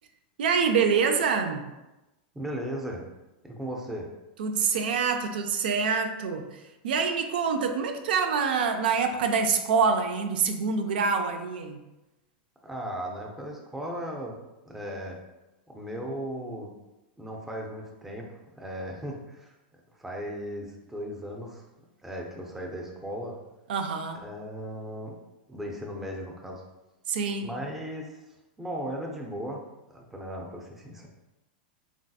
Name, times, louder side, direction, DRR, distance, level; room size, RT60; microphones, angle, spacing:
voice 1, 0.4-1.6 4.4-11.8 23.7-24.2 27.1-27.5, right 5 dB, 80° right, 5 dB, 0.4 m, -26 dB
voice 2, 2.3-3.0 3.4-4.1 12.6-14.3 14.6-15.2 15.7-16.7 17.2-19.5 20.0-21.7 22.0-23.4 24.2-25.1 25.5-26.6 27.4-28.2 28.6-29.6 29.9-31.1, equal, 5° right, 0 dB, 0.5 m, -36 dB
3.3 x 2.7 x 2.3 m, 1.0 s
supercardioid pair, 130°, 5 cm